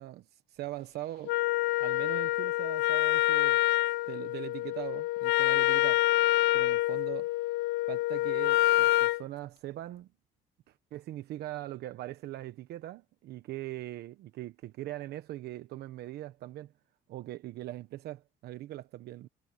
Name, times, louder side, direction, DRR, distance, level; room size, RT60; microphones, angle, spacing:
voice 1, 0.0-1.4 1.8-3.6 4.1-6.0 6.5-7.3 7.9-10.1 10.7-16.7 17.1-19.3, right 15 dB, 75° right, 1.1 m, -41 dB
Wind instrument woodwind instrument, 1.3-9.2, left 18 dB, 90° left, 0.7 m, -27 dB
cardioid pair, 110°, 17 cm